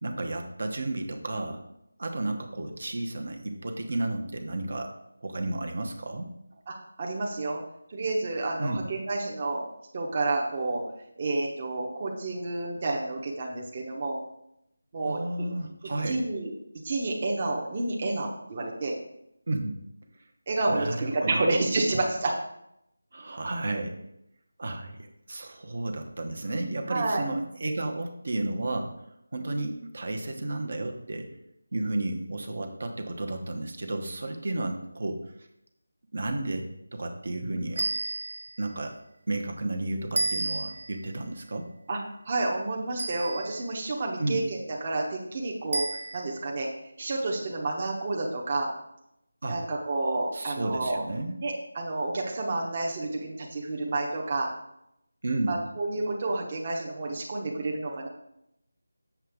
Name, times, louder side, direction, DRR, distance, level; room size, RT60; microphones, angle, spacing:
voice 1, 0.0-1.6 2.0-6.3 8.6-8.8 15.0-16.2 19.5-19.8 20.7-21.4 23.1-24.1 24.6-29.0 29.3-31.3 31.7-35.5 36.1-37.9 38.6-39.0 39.3-41.7 44.2-44.4 49.4-49.6 50.3-51.4 55.2-55.5, right 2 dB, 50° right, 4 dB, 1.1 m, -32 dB
voice 2, 6.7-7.6 7.9-9.6 9.9-10.8 11.2-14.2 14.9-15.2 16.1-16.5 16.8-19.0 20.5-22.3 26.9-27.2 41.9-42.0 42.3-45.9 46.1-46.7 47.0-48.7 49.5-51.0 51.4-54.5 55.5-58.1, right 2 dB, 30° right, -1 dB, 1.0 m, -29 dB
sound 1, 37.8-38.6 40.2-41.0 43.0-43.7 45.7-46.4, right 2 dB, 80° right, 0.6 m, -31 dB
7.3 x 6.9 x 3.5 m, 0.80 s
figure-of-eight pair, 175°, 0 cm